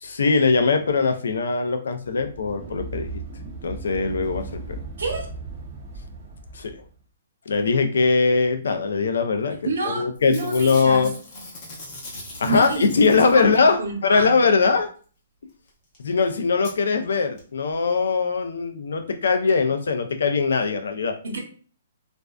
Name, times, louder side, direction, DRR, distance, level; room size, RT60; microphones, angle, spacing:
voice 1, 0.0-3.1 3.6-4.8 6.5-6.7 7.5-9.6 9.9-11.1 12.4-14.9 16.0-21.1, left 4 dB, 80° left, 7 dB, 0.4 m, -21 dB
sound 1, 2.0-6.9, right 3 dB, 25° right, 0.5 m, -36 dB
voice 2, 5.0-5.3 9.6-11.1 12.4-14.3 21.2-21.4, right 2 dB, 85° right, 2 dB, 0.8 m, -29 dB
Packing tape duct tape / Tearing, 9.6-9.9 10.1-13.7 15.7-15.8 15.9-16.0 16.6-16.7 17.4-17.5 17.7-17.8, left 1 dB, 30° left, 0.8 m, -40 dB
2.5 x 2.1 x 2.3 m, 0.40 s
hypercardioid pair, 170°, 0 cm